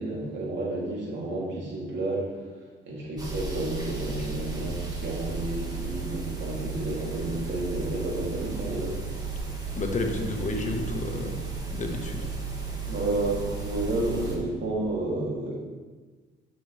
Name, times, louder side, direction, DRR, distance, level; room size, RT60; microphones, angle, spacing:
voice 1, 0.0-2.5 2.9-8.9 12.8-15.6, right 2 dB, 65° right, -3 dB, 2.7 m, -31 dB
sound 1, 3.2-14.4, right 4 dB, 20° right, 2.1 m, -34 dB
voice 2, 9.8-11.5 11.7-12.3, left 2 dB, 40° left, 3 dB, 1.3 m, -31 dB
10.5 x 7.1 x 3.3 m, 1.3 s
cardioid pair, 90°, 20 cm